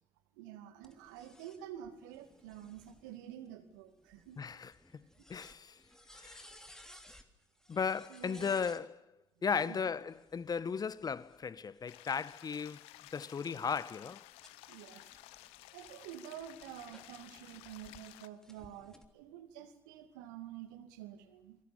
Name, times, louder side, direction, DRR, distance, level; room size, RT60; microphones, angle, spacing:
voice 1, 0.3-4.4 8.1-8.6 9.4-9.8 14.7-15.1 15.7-21.6, right 10 dB, 75° right, 2.5 m, -49 dB
sound 1, 0.8-8.8 10.0-12.3 12.9-18.0 18.4-19.0, left 1 dB, 5° left, 3.3 m, -60 dB
voice 2, 4.4-5.0 5.3-5.8 6.2-6.4 7.7-8.9 9.4-12.8 13.1-14.2, left 6 dB, 40° left, 1.3 m, -36 dB
sound 2, 11.9-18.3, left 17 dB, 70° left, 0.9 m, -55 dB
29.5 x 22.0 x 7.3 m
figure-of-eight pair, 45°, 10 cm